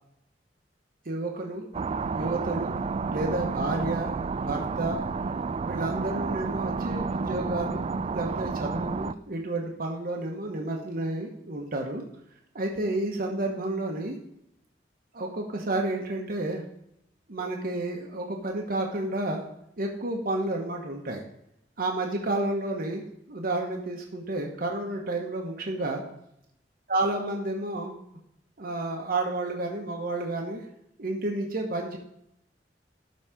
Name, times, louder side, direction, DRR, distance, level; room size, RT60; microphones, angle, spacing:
voice 1, 1.0-1.7 2.1-2.8 3.1-4.1 4.4-5.0 5.6-7.8 8.1-12.0 12.5-14.2 15.1-16.6 17.3-19.4 19.8-21.2 21.8-23.0 23.3-26.0 26.9-28.1 28.6-30.7 31.0-32.0, right 2 dB, 55° right, 1 dB, 1.1 m, -30 dB
sound 1, 1.7-9.1, right 4 dB, 35° right, 0.3 m, -30 dB
12.0 x 4.1 x 5.0 m, 0.76 s
head